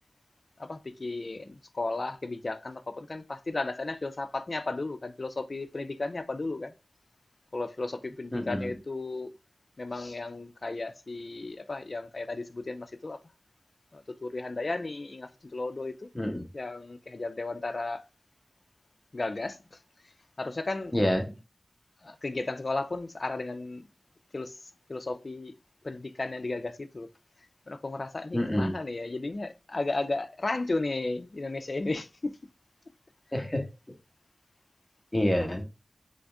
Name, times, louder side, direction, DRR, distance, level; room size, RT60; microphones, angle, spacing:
voice 1, 0.6-6.7 7.5-9.3 9.8-13.2 13.9-16.1 16.5-18.0 19.1-19.6 20.4-21.0 22.0-23.8 24.3-24.5 24.9-25.5 25.8-27.1 27.7-32.3, left 2 dB, 55° left, 0.5 m, -34 dB
voice 2, 8.3-8.8 16.1-16.5 20.9-21.3 28.3-28.8 33.3-33.6 35.1-35.6, left 1 dB, 15° left, 1.2 m, -27 dB
3.9 x 3.4 x 3.4 m
wide cardioid pair, 65°, 0 cm